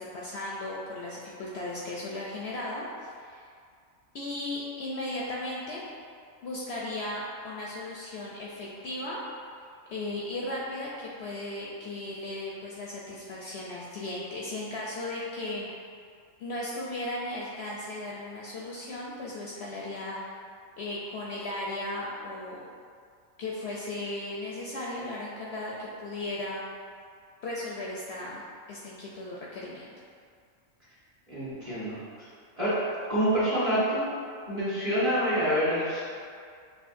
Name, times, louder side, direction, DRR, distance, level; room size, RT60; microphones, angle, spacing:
voice 1, 0.0-3.5 4.1-5.8 6.4-9.2 9.9-15.7 16.4-20.4 20.8-22.6 23.4-26.7 27.4-29.8, left 1 dB, 65° left, -5 dB, 0.7 m, -36 dB
voice 2, 31.3-32.0 32.6-32.8 33.1-34.0 34.5-36.2, equal, 30° right, -11 dB, 1.3 m, -27 dB
6.1 x 2.7 x 2.5 m, 2.2 s
omnidirectional pair, 1.4 m